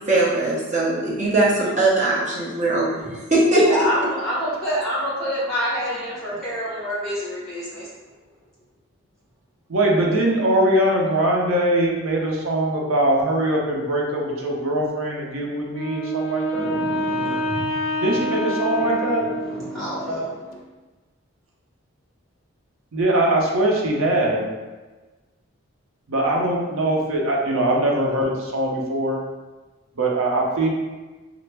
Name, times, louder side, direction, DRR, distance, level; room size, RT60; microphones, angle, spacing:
voice 1, 0.1-3.0 3.3-3.6, right 2 dB, 35° right, -6 dB, 0.7 m, -20 dB
voice 2, 3.7-7.9 16.5-17.6 19.4-20.6, equal, ahead, -9 dB, 1.0 m, -27 dB
voice 3, 9.7-16.8 18.0-19.3 22.9-24.4 26.1-29.2 30.0-30.7, right 1 dB, 80° right, -1 dB, 0.6 m, -21 dB
Wind instrument woodwind instrument, 15.7-19.9, equal, 70° left, 0.4 m, -27 dB
3.2 x 2.0 x 3.3 m, 1.2 s
head